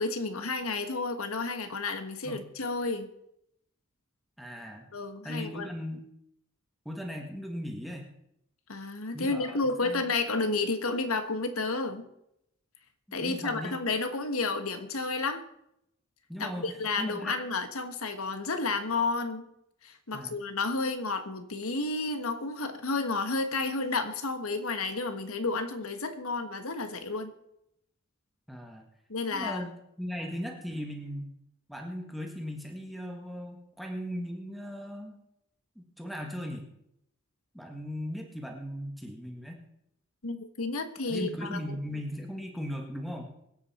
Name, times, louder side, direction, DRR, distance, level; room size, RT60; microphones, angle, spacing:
voice 1, 0.0-3.1 4.9-5.7 8.7-12.0 13.1-15.4 16.4-19.5 19.8-27.3 29.1-29.7 40.2-41.8, left 3 dB, 80° left, 9 dB, 1.5 m, -31 dB
voice 2, 4.4-4.9 5.2-6.1 6.8-8.1 9.1-10.1 13.1-13.8 16.3-17.3 20.1-20.4 28.5-28.8 29.3-29.7 30.0-31.3 31.7-35.2 35.7-36.7 37.5-39.6 41.1-43.3, equal, ahead, 2 dB, 1.6 m, -38 dB
24.5 x 8.5 x 4.3 m, 0.79 s
head